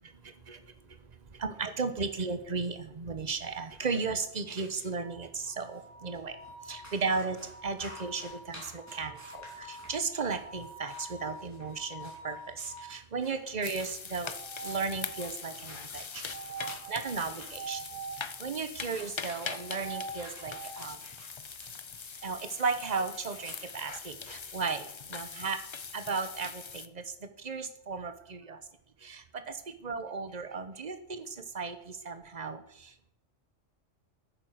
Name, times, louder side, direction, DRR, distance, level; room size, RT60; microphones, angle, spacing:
voice 1, 0.2-14.3 14.6-16.3 16.9-17.8 18.1-21.0 22.2-25.6 25.9-28.6 29.0-33.1, right 4 dB, 35° right, 10 dB, 1.1 m, -35 dB
sound 1, 4.5-4.9 5.7-5.8 6.1-6.2 6.4-17.5 18.7-23.7, equal, 15° left, 4.7 m, -52 dB
sound 2, 4.9-13.0 14.2-15.5 16.3-18.2 19.4-20.8, right 3 dB, 70° right, 3.5 m, -45 dB
sound 3, 13.6-26.9, left 6 dB, 45° left, 0.4 m, -42 dB
10.5 x 9.0 x 6.6 m, 0.72 s
omnidirectional pair, 1.3 m